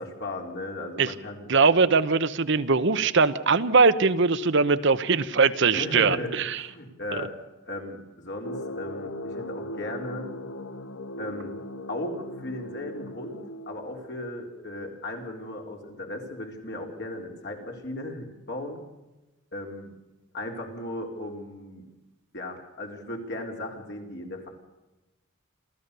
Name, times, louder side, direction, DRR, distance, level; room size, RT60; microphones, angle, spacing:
voice 1, 0.0-1.5 5.7-7.3 7.6-10.3 11.2-11.5 11.9-18.8 19.5-19.9 20.3-21.9 22.3-24.5, left 1 dB, 55° left, 1 dB, 4.2 m, -36 dB
voice 2, 1.5-6.6, right 4 dB, 60° right, 12 dB, 0.9 m, -21 dB
sound 1, 8.4-14.2, left 1 dB, 80° left, 1.1 m, -38 dB
28.0 x 14.5 x 6.8 m, 1.0 s
head